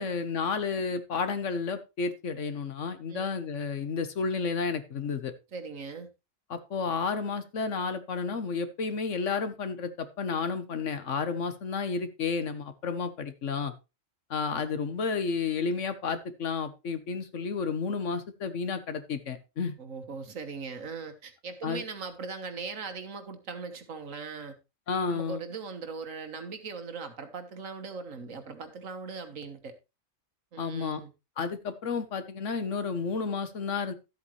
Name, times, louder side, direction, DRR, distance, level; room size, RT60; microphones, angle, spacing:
voice 1, 0.0-5.3 6.5-13.7 14.3-19.8 21.6-21.8 24.9-25.4 30.6-31.0 31.4-33.9, left 5 dB, 70° left, 1.5 m, -31 dB
voice 2, 5.5-6.1 19.8-24.6 25.1-29.8 30.5-31.1, right 4 dB, 80° right, 1.7 m, -39 dB
12.5 x 8.2 x 3.2 m
omnidirectional pair, 1.3 m